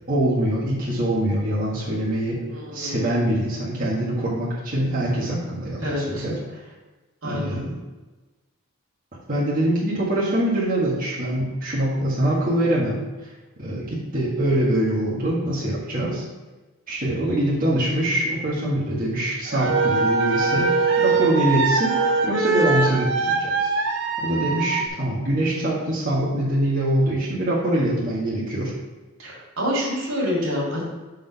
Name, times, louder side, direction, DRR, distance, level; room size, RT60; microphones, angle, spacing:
voice 1, 0.1-2.4 2.7-6.6 7.2-7.7 9.3-13.3 13.6-16.2 16.9-20.7 21.0-21.9 22.2-23.7 24.2-28.7, right 1 dB, 40° right, -7 dB, 1.6 m, -24 dB
voice 2, 2.5-3.4 5.8-6.3 7.2-7.6 17.1-17.4 24.4-24.6 29.2-30.9, equal, 80° right, -4 dB, 2.4 m, -28 dB
sound 1, 19.5-24.9, right 4 dB, 60° right, 0.7 m, -22 dB
6.6 x 4.1 x 5.3 m, 1.2 s
head